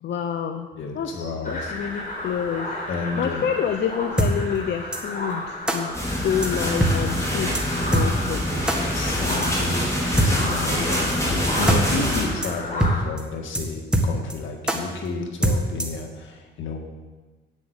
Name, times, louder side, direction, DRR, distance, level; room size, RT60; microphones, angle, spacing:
voice 1, 0.0-0.7 0.9-2.7 3.2-6.0 6.2-7.5 7.9-8.4, left 8 dB, 60° left, 5 dB, 0.8 m, -27 dB
voice 2, 0.8-1.7 2.9-3.5 8.8-16.8, left 4 dB, 75° left, 3 dB, 1.8 m, -31 dB
sound 1, 1.4-13.0, left 2 dB, 40° left, 4.4 m, -33 dB
sound 2, 4.2-4.3 4.9-5.0 5.7-5.8 6.4-6.5 6.8-6.9 7.2-7.3 7.5-7.6 7.9-8.1 8.7-8.8 9.4-9.5 10.2-10.3 10.9-11.0 11.3-11.4 11.7-11.8 12.1-12.2 12.4-12.5 12.8-12.9 13.2-13.3 13.5-13.6 13.9-14.3 14.7-14.8 15.4-16.0, right 1 dB, 5° right, 1.7 m, -21 dB
sound 3, 5.9-12.3, equal, 15° left, 4.5 m, -25 dB
8.5 x 7.5 x 8.1 m, 1.3 s
cardioid pair, 90°, 20 cm